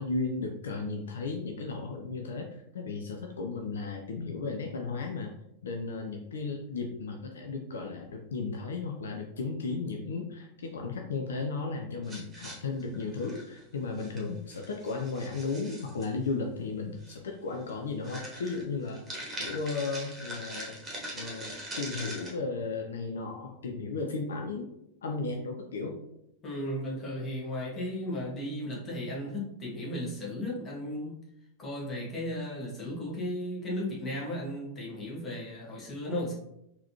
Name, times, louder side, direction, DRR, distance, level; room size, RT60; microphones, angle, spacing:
voice 1, 0.0-5.3 5.6-19.0 19.4-20.7 21.1-24.7 25.0-26.0, left 4 dB, 65° left, 2 dB, 0.4 m, -35 dB
sound 1, 12.0-13.6 14.0-14.2 14.5-16.1 17.0-17.2 17.5-17.7 18.0-22.3, equal, 20° right, 1.3 m, -41 dB
voice 2, 26.4-31.2 31.6-36.3, left 1 dB, 25° left, -4 dB, 1.4 m, -35 dB
3.9 x 2.8 x 2.9 m, 0.83 s
figure-of-eight pair, 90°, 0 cm